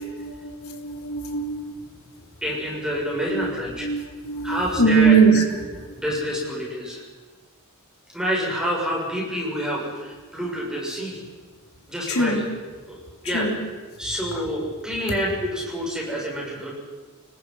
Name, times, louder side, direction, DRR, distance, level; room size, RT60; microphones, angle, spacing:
voice 1, 0.0-1.8 3.3-3.5 3.8-5.4 12.1-12.4 13.3-13.5, right 4 dB, 70° left, 2 dB, 3.5 m, -21 dB
voice 2, 2.4-3.9 4.4-5.4 5.9-7.0 8.1-11.2 11.9-12.5 12.9-13.0 13.2-13.5 14.0-16.7, equal, 5° right, -4 dB, 7.3 m, -27 dB
30.0 x 20.0 x 5.7 m, 1.3 s
head